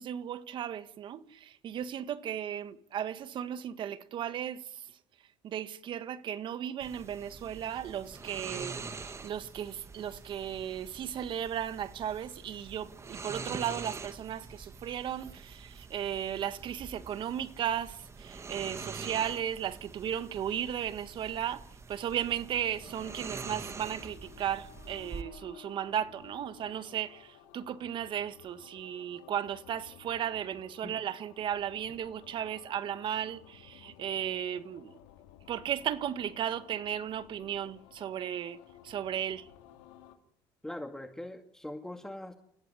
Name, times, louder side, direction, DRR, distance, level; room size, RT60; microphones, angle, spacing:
voice 1, 0.0-4.9 5.4-34.9 35.5-39.5, right 10 dB, 55° right, 1.8 m, -35 dB
sound 1, 6.8-25.2, right 4 dB, 30° right, 2.0 m, -45 dB
sound 2, 22.3-40.2, left 11 dB, 85° left, 2.7 m, -55 dB
voice 2, 40.6-42.3, left 1 dB, 5° left, 2.1 m, -41 dB
29.5 x 17.0 x 9.9 m
supercardioid pair, 90°, 10 cm